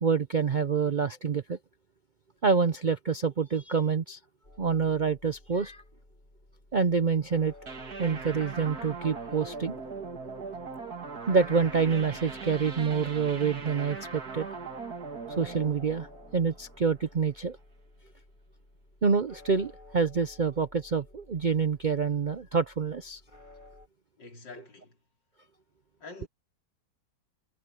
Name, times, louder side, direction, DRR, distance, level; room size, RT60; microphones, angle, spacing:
voice 1, 0.0-1.6 2.4-4.2 4.6-5.8 6.7-7.5 8.0-9.8 11.3-14.5 15.4-17.6 19.0-23.2, right 5 dB, 80° right, 0.4 m, -27 dB
sound 1, 4.4-23.9, left 2 dB, 25° left, 5.9 m, -54 dB
sound 2, 7.7-17.0, right 4 dB, 60° right, 2.7 m, -40 dB
voice 2, 24.2-25.0 26.0-26.3, left 3 dB, 85° left, 4.4 m, -46 dB
omnidirectional pair, 1.9 m